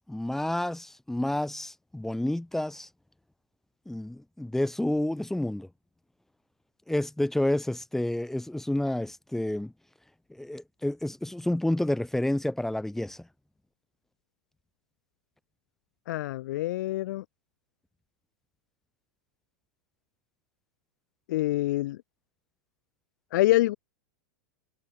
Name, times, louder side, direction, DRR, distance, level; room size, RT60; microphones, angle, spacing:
voice 1, 0.1-2.9 3.9-5.7 6.9-9.7 10.4-13.2, left 1 dB, 5° left, 0.9 m, -29 dB
voice 2, 16.1-17.2 21.3-22.0 23.3-23.8, left 16 dB, 70° left, 0.8 m, -26 dB
hypercardioid pair, 120°, 10 cm